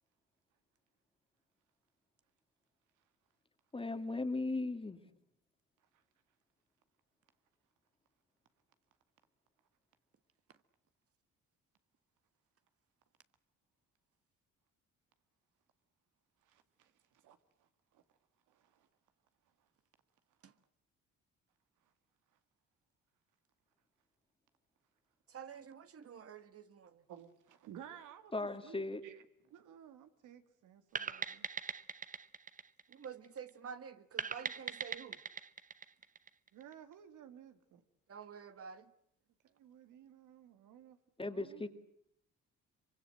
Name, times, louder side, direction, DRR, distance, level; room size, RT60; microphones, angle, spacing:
voice 1, 3.7-5.0 28.3-29.0 41.2-41.7, left 2 dB, 20° left, 2.2 m, -37 dB
voice 2, 16.4-18.0 18.5-18.9 27.1-28.3 28.6-31.5 36.5-37.8 39.4-41.7, right 9 dB, 85° right, 2.1 m, -56 dB
voice 3, 25.3-27.0 32.9-35.2 38.1-38.9, right 7 dB, 50° right, 1.6 m, -49 dB
sound 1, 31.0-33.5 34.2-36.7, right 5 dB, 25° right, 1.0 m, -41 dB
24.5 x 24.5 x 7.8 m
cardioid pair, 90°, 30 cm